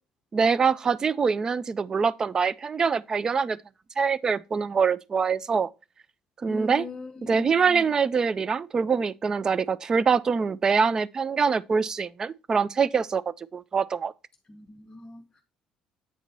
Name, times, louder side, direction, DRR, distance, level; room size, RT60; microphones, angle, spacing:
voice 1, 0.3-3.6 4.0-5.7 6.4-6.9 7.2-14.1, right 5 dB, 30° right, 0.4 m, -24 dB
voice 2, 6.5-7.9 14.5-15.4, left 2 dB, 25° left, 0.8 m, -41 dB
8.3 x 4.5 x 4.0 m
cardioid pair, 110°, 2 cm